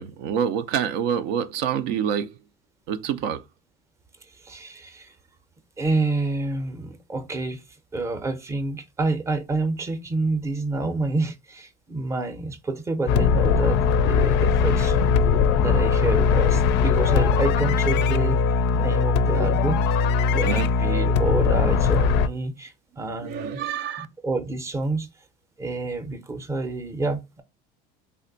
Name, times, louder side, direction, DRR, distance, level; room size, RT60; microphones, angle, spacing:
voice 1, 0.0-2.3 2.9-3.4 20.4-20.7 23.2-24.1, right 8 dB, 75° right, 0.5 m, -26 dB
voice 2, 4.4-5.1 5.8-7.6 7.9-18.4 18.7-19.8 20.3-23.6 24.0-25.1 25.6-27.4, right 3 dB, 15° right, 0.6 m, -28 dB
sound 1, 13.1-22.3, left 5 dB, 60° left, 0.4 m, -20 dB
3.3 x 2.1 x 3.8 m
supercardioid pair, 105°, 20 cm